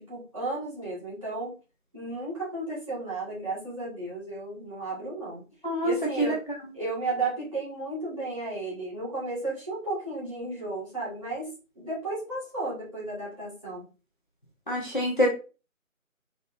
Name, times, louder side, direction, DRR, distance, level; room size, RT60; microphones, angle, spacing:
voice 1, 0.0-1.5 1.9-5.4 5.8-6.4 6.7-11.5 11.7-13.8, right 2 dB, 25° right, -8 dB, 1.7 m, -33 dB
voice 2, 14.7-15.3, equal, 40° left, -2 dB, 0.9 m, -25 dB
3.9 x 3.9 x 2.6 m, 0.32 s
figure-of-eight pair, 175°, 41 cm